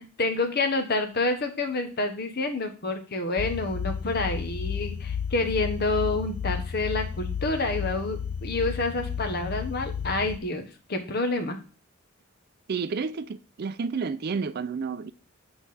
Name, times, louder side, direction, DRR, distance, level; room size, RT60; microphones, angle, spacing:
voice 1, 0.0-10.6 10.9-11.6, left 2 dB, 50° left, 1.1 m, -28 dB
sound 1, 3.4-10.4, left 7 dB, 80° left, 0.4 m, -32 dB
voice 2, 12.7-15.1, right 5 dB, 50° right, 0.4 m, -30 dB
7.6 x 4.6 x 4.2 m
head